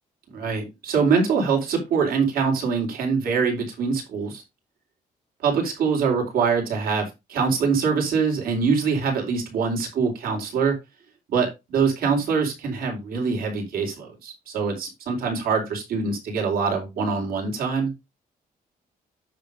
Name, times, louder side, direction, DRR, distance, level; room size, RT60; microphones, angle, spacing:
voice 1, 0.3-4.4 5.4-10.7 11.3-17.9, right 5 dB, 90° right, 2 dB, 4.2 m, -24 dB
9.5 x 4.0 x 5.2 m, 0.23 s
cardioid pair, 150°, 15 cm